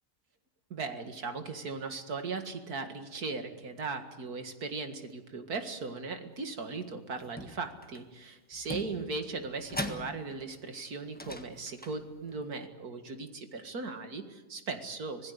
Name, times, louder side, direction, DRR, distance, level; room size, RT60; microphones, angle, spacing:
voice 1, 0.7-15.3, right 4 dB, 75° right, 7 dB, 2.4 m, -38 dB
sound 1, 7.2-8.0 8.5-10.6 11.1-12.4, left 1 dB, 5° left, 1.3 m, -41 dB
26.5 x 17.5 x 8.2 m, 1.2 s
omnidirectional pair, 1.6 m